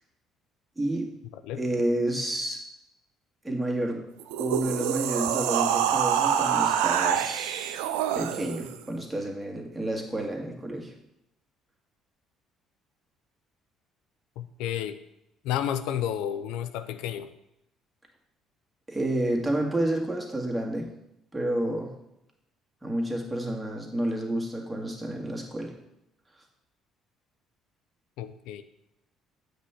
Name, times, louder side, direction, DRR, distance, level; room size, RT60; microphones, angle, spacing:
voice 1, 0.8-1.1 1.6-2.6 3.4-4.0 4.4-7.8 8.1-10.9 18.9-20.9 21.3-21.9 22.8-25.7, right 1 dB, 10° right, -1 dB, 1.8 m, -30 dB
sound 1, 4.2-8.8, right 9 dB, 75° right, 0.4 m, -26 dB
voice 2, 14.4-15.0 15.4-17.3 28.2-28.6, left 10 dB, 70° left, 10 dB, 0.4 m, -31 dB
8.0 x 3.4 x 5.7 m, 0.84 s
hypercardioid pair, 50°, 0 cm